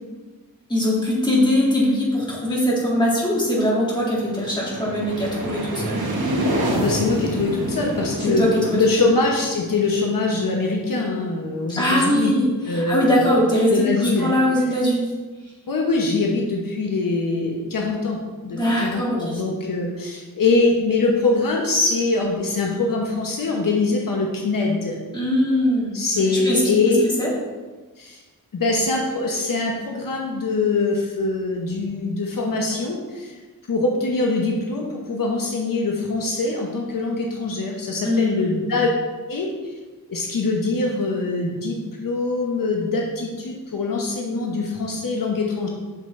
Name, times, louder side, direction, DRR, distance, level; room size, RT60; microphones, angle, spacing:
voice 1, 0.7-6.0 8.2-8.5 11.8-15.2 18.5-19.4 25.1-26.0 26.3-27.3 38.0-38.5, equal, 10° left, -5 dB, 2.0 m, -21 dB
sound 1, 4.0-10.8, right 1 dB, 85° right, 1.6 m, -28 dB
voice 2, 6.7-8.5 8.7-12.3 12.7-13.5 13.7-14.3 15.7-18.2 18.4-25.0 25.9-27.1 28.0-28.2 28.5-33.3 33.7-38.9 39.3-39.7 40.1-45.7, left 3 dB, 65° left, 0 dB, 1.0 m, -23 dB
7.4 x 6.3 x 3.2 m, 1.3 s
wide cardioid pair, 145°, 36 cm